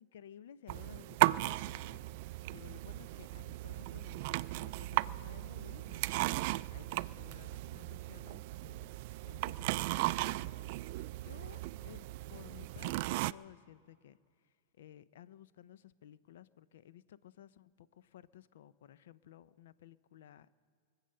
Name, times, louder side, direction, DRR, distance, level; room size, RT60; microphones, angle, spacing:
voice 1, 0.0-6.3 6.7-8.9 9.2-14.2 14.4-20.6, left 11 dB, 75° left, 17 dB, 0.6 m, -56 dB
sound 1, 0.7-13.3, right 19 dB, 55° right, 0.3 m, -36 dB
24.0 x 8.2 x 6.6 m, 2.2 s
hypercardioid pair, 135°, 0 cm